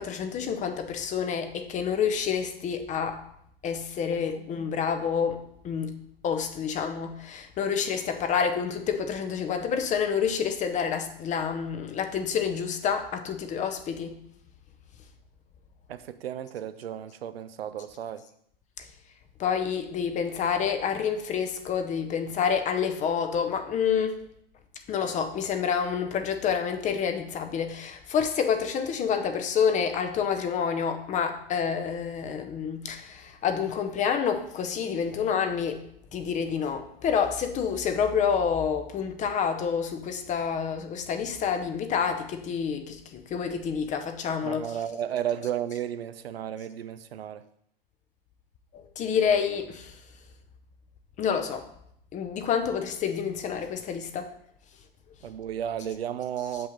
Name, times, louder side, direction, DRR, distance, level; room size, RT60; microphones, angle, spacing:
voice 1, 0.0-3.2 3.6-6.0 6.2-14.2 19.4-24.2 24.9-35.8 36.1-44.7 48.7-49.9 51.2-51.7 52.1-54.3, left 7 dB, 25° left, 7 dB, 0.7 m, -28 dB
voice 2, 15.9-18.3 44.4-47.4 55.2-56.7, right 10 dB, 80° right, 12 dB, 0.6 m, -33 dB
6.9 x 5.6 x 3.9 m, 0.71 s
hypercardioid pair, 110°, 30 cm